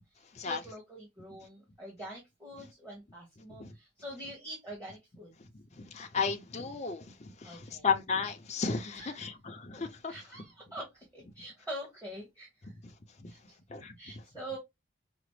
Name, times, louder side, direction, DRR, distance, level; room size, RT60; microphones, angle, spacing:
voice 1, 0.1-5.3 7.4-7.9 8.9-9.3 10.1-12.7 13.3-13.6 14.0-14.6, right 1 dB, 15° right, 1.2 m, -45 dB
voice 2, 5.8-10.1 13.2-13.3 13.7-14.0, left 5 dB, 35° left, 0.5 m, -34 dB
4.9 x 2.0 x 3.0 m
head